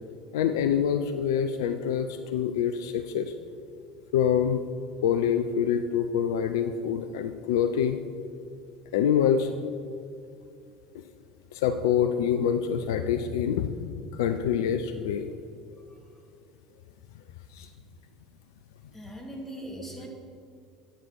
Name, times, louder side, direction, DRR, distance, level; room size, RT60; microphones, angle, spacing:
voice 1, 0.3-3.3 4.1-4.6 5.0-8.0 8.9-9.5 11.5-15.3 17.5-17.7, left 8 dB, 65° left, 9 dB, 0.4 m, -26 dB
voice 2, 18.9-20.1, right 1 dB, 10° left, 0 dB, 2.2 m, -40 dB
10.0 x 9.0 x 4.6 m, 2.4 s
figure-of-eight pair, 70°, 2 cm